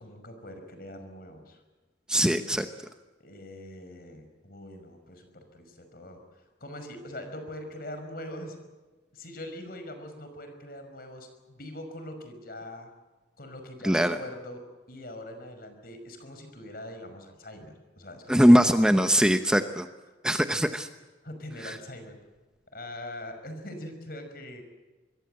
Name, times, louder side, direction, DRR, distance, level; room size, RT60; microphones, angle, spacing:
voice 1, 0.0-1.6 3.2-6.2 6.6-8.6 9.1-12.9 13.4-18.7 20.5-20.6 21.2-22.2 22.7-24.6, left 1 dB, 55° left, 7 dB, 5.4 m, -42 dB
voice 2, 2.1-2.7 13.8-14.2 18.3-19.9 20.2-20.9, equal, 5° right, 7 dB, 0.8 m, -21 dB
25.5 x 22.0 x 7.8 m, 1.2 s
head